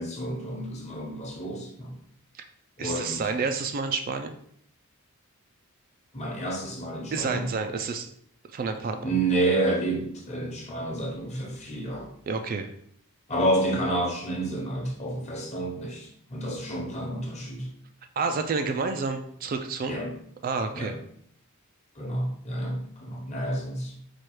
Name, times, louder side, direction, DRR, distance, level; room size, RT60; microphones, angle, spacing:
voice 1, 0.0-1.9 2.8-3.3 6.1-7.5 9.0-12.1 13.3-17.7 19.9-20.1 20.7-21.0 21.9-23.9, right 1 dB, 30° left, -1 dB, 1.0 m, -29 dB
voice 2, 2.8-4.3 7.1-8.1 8.5-9.1 12.3-12.7 18.2-20.0 20.4-20.9, right 4 dB, 40° right, 6 dB, 0.3 m, -29 dB
4.3 x 2.3 x 4.6 m, 0.66 s
head